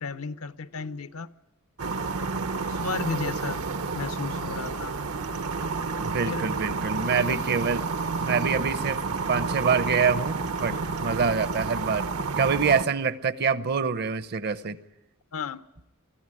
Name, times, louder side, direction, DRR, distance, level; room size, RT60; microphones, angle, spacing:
voice 1, 0.0-1.3 2.7-3.6 3.9-5.0 6.3-6.5 7.2-7.4 10.7-10.9 15.3-15.6, left 4 dB, 70° left, 0.7 m, -34 dB
sound 1, 1.8-12.8, right 4 dB, 75° right, 1.1 m, -30 dB
voice 2, 6.0-7.9 8.2-10.7 11.0-12.1 12.4-14.8, right 5 dB, 50° right, 0.8 m, -26 dB
24.0 x 15.0 x 9.8 m
head